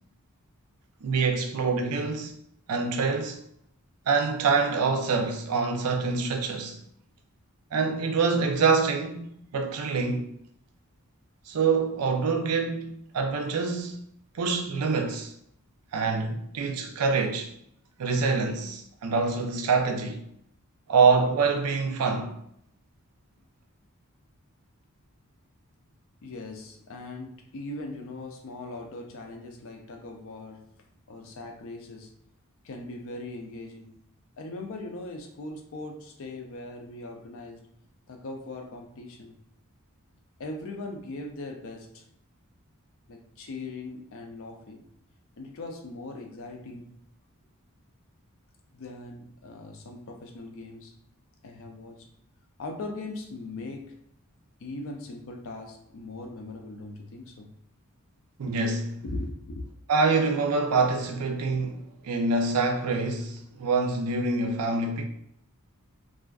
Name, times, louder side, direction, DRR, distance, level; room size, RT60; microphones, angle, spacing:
voice 1, 1.0-2.3 2.7-3.4 4.1-6.8 7.7-10.3 11.5-14.0 14.3-15.3 15.9-17.5 18.0-20.2 20.9-22.3 58.4-59.0 59.9-65.0, right 4 dB, 85° right, 0.4 m, -25 dB
voice 2, 26.2-30.7 31.1-32.1 32.6-33.9 34.4-37.7 38.1-39.4 40.4-42.1 43.1-44.9 45.4-47.0 48.7-51.0 51.4-52.1 52.6-54.0 54.6-57.5 59.0-59.7, left 2 dB, 60° left, 0.4 m, -40 dB
2.5 x 2.4 x 2.3 m
head